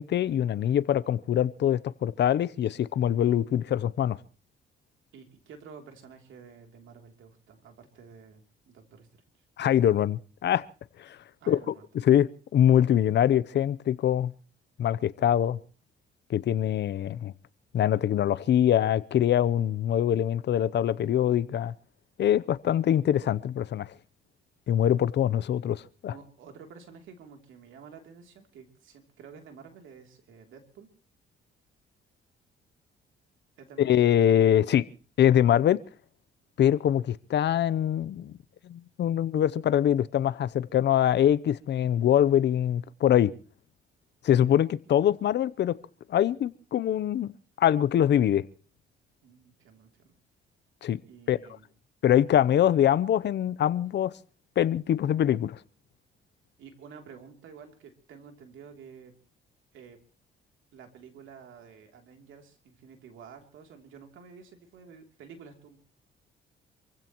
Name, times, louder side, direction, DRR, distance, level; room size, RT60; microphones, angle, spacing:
voice 1, 0.0-4.2 9.6-10.6 11.0-11.2 11.5-11.6 12.1-14.3 14.8-15.6 16.3-17.3 17.7-21.7 22.2-23.9 24.7-26.1 33.8-34.8 35.2-35.8 36.6-38.3 38.6-43.3 44.2-45.8 46.1-47.3 47.6-48.4 50.8-51.0 51.3-51.4 52.0-54.1 54.6-55.6, left 10 dB, 60° left, 0.7 m, -23 dB
voice 2, 5.1-9.1 9.3-9.4 11.4-11.8 26.1-30.9 33.6-34.0 49.2-50.2 51.1-51.7 56.6-59.1 59.7-60.0 60.7-65.8, right 6 dB, 80° right, 3.1 m, -50 dB
27.0 x 16.0 x 3.0 m
cardioid pair, 90°, 20 cm